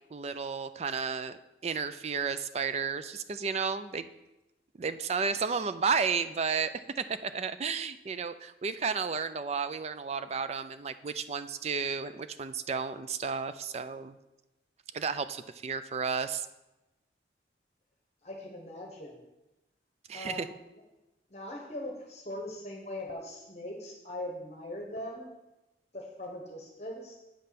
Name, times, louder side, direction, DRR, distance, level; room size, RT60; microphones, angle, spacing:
voice 1, 0.1-4.1 4.8-14.2 14.9-16.5 20.1-20.5, right 5 dB, 35° right, 12 dB, 0.3 m, -32 dB
voice 2, 18.2-19.2 20.1-20.6 21.3-25.3 25.9-27.1, left 1 dB, 35° left, 1 dB, 1.1 m, -40 dB
8.5 x 5.4 x 5.8 m, 1.0 s
head